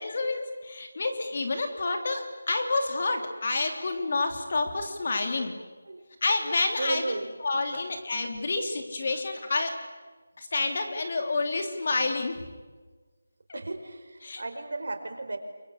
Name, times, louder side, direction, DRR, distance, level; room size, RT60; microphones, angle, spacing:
voice 1, 0.0-5.5 6.2-9.7 10.4-12.4 13.5-13.6 14.2-14.4, left 3 dB, 40° left, 5 dB, 3.1 m, -29 dB
voice 2, 6.8-7.3 13.5-15.4, right 2 dB, 60° right, 6 dB, 4.8 m, -34 dB
29.0 x 23.5 x 8.5 m, 1.4 s
figure-of-eight pair, 175°, 0 cm